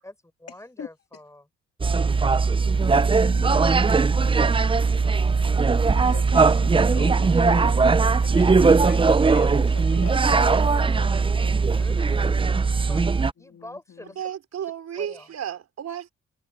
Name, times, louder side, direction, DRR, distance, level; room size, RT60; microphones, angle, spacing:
voice 1, 0.0-1.4 10.4-11.3 11.7-12.4 12.9-13.0 13.4-14.2 15.0-15.3, left 1 dB, 10° left, 7.1 m, -44 dB
sound 1, 1.8-13.3, right 4 dB, 15° right, 0.6 m, -20 dB
voice 2, 2.6-3.8 4.1-5.7 6.0-13.0 13.4-14.2, left 8 dB, 50° left, 2.2 m, -43 dB
voice 3, 14.1-16.1, right 9 dB, 60° right, 4.6 m, -33 dB
cardioid pair, 90°, 30 cm